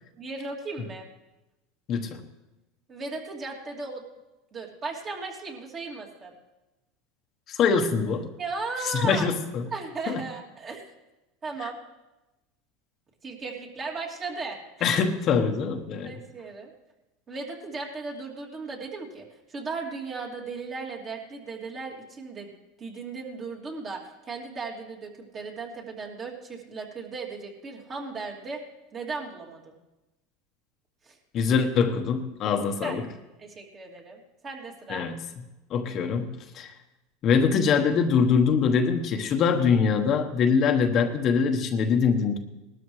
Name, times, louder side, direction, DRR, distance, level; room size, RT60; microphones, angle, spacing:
voice 1, 0.2-1.1 2.9-4.0 4.5-6.3 8.4-9.3 9.7-10.8 11.4-11.8 13.2-14.9 16.0-16.7 17.3-22.5 22.8-28.6 28.9-29.8 31.1-31.2 32.8-32.9 33.4-35.1, right 4 dB, 30° right, -1 dB, 2.7 m, -36 dB
voice 2, 1.9-2.2 7.5-8.3 8.8-9.6 10.1-10.2 14.8-16.1 31.3-33.0 34.9-35.2 35.7-36.7 37.2-42.4, left 6 dB, 45° left, 5 dB, 1.1 m, -23 dB
19.0 x 13.0 x 3.2 m, 1.0 s
supercardioid pair, 115°, 0 cm